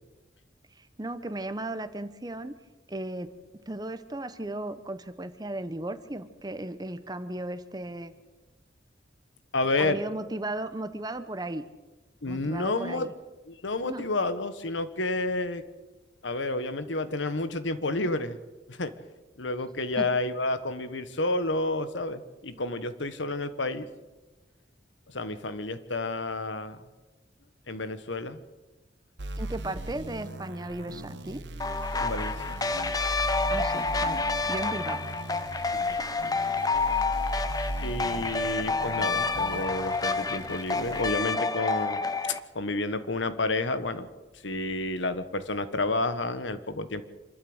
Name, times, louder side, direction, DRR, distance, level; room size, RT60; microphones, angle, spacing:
voice 1, 0.8-2.5 2.9-3.3 3.7-8.1 9.8-11.6 12.3-13.1 13.8-14.1 20.0-20.1 29.4-31.4 33.5-34.2 34.5-35.1, right 1 dB, 20° right, 11 dB, 0.9 m, -35 dB
voice 2, 9.5-10.0 12.2-13.1 13.5-15.6 16.2-18.4 18.7-18.9 19.4-23.9 25.1-26.8 27.7-28.4 32.0-32.6 35.7-36.4 37.8-42.0 42.5-44.1 44.4-47.0, left 2 dB, 85° left, 12 dB, 1.3 m, -30 dB
sound 1, 29.2-41.1, right 1 dB, 70° right, 1.1 m, -38 dB
sound 2, 31.6-42.4, left 3 dB, 20° left, 0.8 m, -29 dB
26.0 x 12.5 x 8.0 m, 1.2 s
head